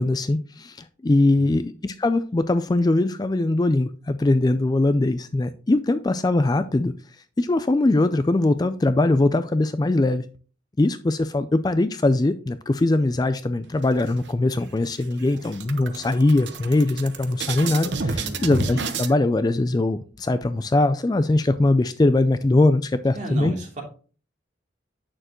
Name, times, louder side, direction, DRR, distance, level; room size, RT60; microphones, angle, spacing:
voice 1, 0.0-6.9 7.4-10.2 10.8-23.5, left 2 dB, 20° left, 12 dB, 0.3 m, -21 dB
sound 1, 13.8-14.6 14.9-15.1 15.4-19.1, right 4 dB, 65° right, 0.9 m, -30 dB
voice 2, 18.2-18.5 23.1-23.8, right 1 dB, 40° right, -2 dB, 3.0 m, -32 dB
8.8 x 6.6 x 3.0 m, 0.38 s
head